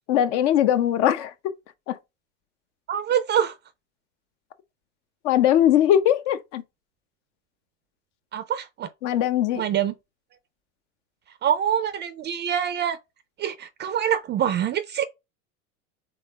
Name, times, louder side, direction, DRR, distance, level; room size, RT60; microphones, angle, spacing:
voice 1, 0.1-1.3 1.9-2.0 5.2-6.6 9.0-9.6, left 11 dB, 65° left, 0.9 m, -20 dB
voice 2, 2.9-3.5 8.3-8.9 9.6-9.9 11.4-13.0 13.4-15.0, right 9 dB, 30° right, 0.4 m, -25 dB
3.5 x 3.5 x 4.2 m
hypercardioid pair, 95°, 37 cm